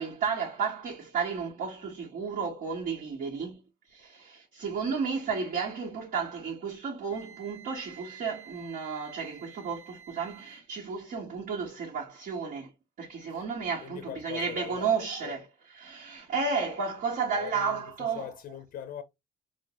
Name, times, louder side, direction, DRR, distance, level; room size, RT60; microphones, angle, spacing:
voice 1, 0.0-3.6 3.9-12.7 13.0-15.4 15.7-18.3, right 5 dB, 60° right, 1.3 m, -32 dB
Wind instrument woodwind instrument, 7.1-10.6, right 7 dB, 40° right, 0.8 m, -51 dB
voice 2, 13.8-15.4 17.3-19.0, left 9 dB, 55° left, 0.5 m, -41 dB
4.4 x 2.2 x 2.9 m
cardioid pair, 110°, 17 cm